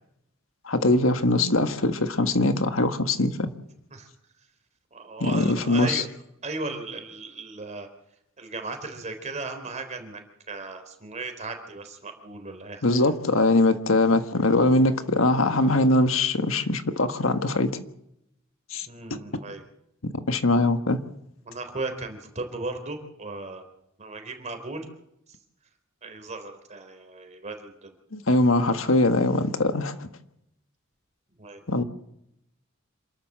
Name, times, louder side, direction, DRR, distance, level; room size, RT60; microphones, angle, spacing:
voice 1, 0.6-3.5 5.2-6.0 12.8-17.8 18.7-19.2 20.3-21.0 28.1-30.1 31.7-31.8, left 2 dB, 75° left, 1.6 m, -22 dB
voice 2, 4.9-6.1 6.4-7.9 8.4-10.2 10.5-13.0 18.8-19.6 21.4-23.6 24.0-24.9 26.0-27.9 31.4-31.6, right 3 dB, 35° right, 3.8 m, -36 dB
27.5 x 12.5 x 7.6 m
head